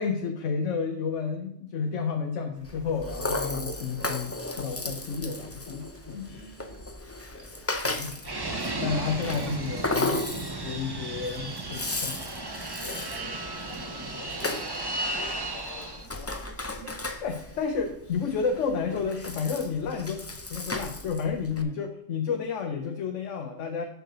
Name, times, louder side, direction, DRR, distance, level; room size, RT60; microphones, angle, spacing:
voice 1, 0.0-6.4 7.8-8.1 8.8-10.2 10.6-12.2 17.0-23.9, left 5 dB, 80° left, 4 dB, 1.2 m, -31 dB
sound 1, 2.5-17.3, right 1 dB, 75° right, 1.8 m, -54 dB
Rattle (instrument), 2.7-21.6, left 2 dB, 20° left, 0.5 m, -35 dB
voice 2, 6.2-6.8 7.3-8.0 9.0-9.5 12.8-16.7 17.4-18.0 21.6-21.8, left 2 dB, 60° left, 1 dB, 3.0 m, -49 dB
Fixed-wing aircraft airplane, 8.2-16.1, right 2 dB, 20° right, 0.8 m, -34 dB
6.7 x 6.6 x 6.3 m, 0.74 s
omnidirectional pair, 1.3 m